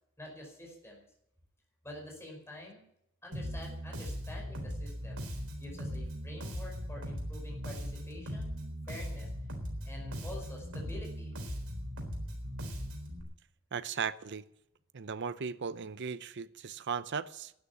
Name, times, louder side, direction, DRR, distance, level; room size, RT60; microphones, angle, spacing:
voice 1, 0.2-1.1 1.8-2.9 3.2-5.2 5.6-8.5 8.9-9.3 9.9-11.3, left 1 dB, 10° left, 5.1 m, -47 dB
Bass guitar, 3.3-13.2, equal, 85° right, 3.8 m, -39 dB
voice 2, 13.7-14.4 14.9-17.5, right 6 dB, 55° right, 0.7 m, -37 dB
13.0 x 10.0 x 9.6 m
head